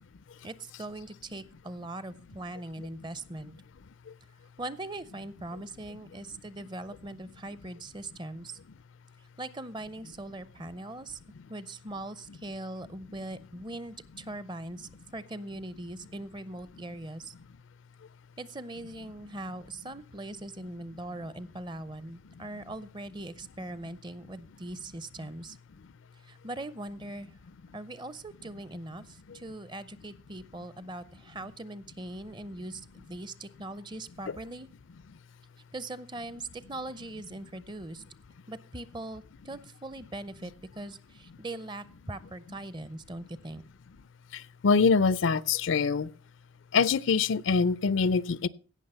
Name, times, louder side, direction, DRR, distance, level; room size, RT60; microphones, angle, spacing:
voice 1, 0.4-3.5 4.6-8.6 9.4-11.2 11.5-17.3 18.4-25.6 26.2-27.3 27.7-34.7 35.7-38.0 38.5-43.6, right 2 dB, 20° right, 0.6 m, -41 dB
voice 2, 44.3-46.1 46.7-48.5, left 5 dB, 65° left, 0.4 m, -25 dB
16.5 x 6.3 x 5.5 m
head